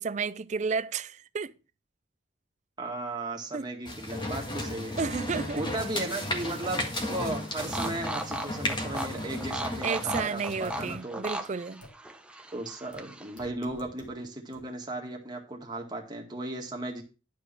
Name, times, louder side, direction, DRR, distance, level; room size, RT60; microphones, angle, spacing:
voice 1, 0.0-1.5 3.5-3.7 5.0-5.6 9.8-11.8, right 5 dB, 40° right, 0.4 m, -32 dB
voice 2, 2.8-5.0 5.5-11.3 12.5-17.0, right 2 dB, 20° right, 2.0 m, -36 dB
sound 1, 3.8-10.9, left 1 dB, 25° left, 1.8 m, -34 dB
sound 2, 5.3-13.5, right 1 dB, 5° right, 0.7 m, -39 dB
sound 3, 10.6-10.7 11.2-11.3 11.8-11.9 12.9-13.0 13.4-14.1 14.5-14.6, left 1 dB, 75° left, 2.5 m, -49 dB
11.0 x 4.9 x 5.9 m
head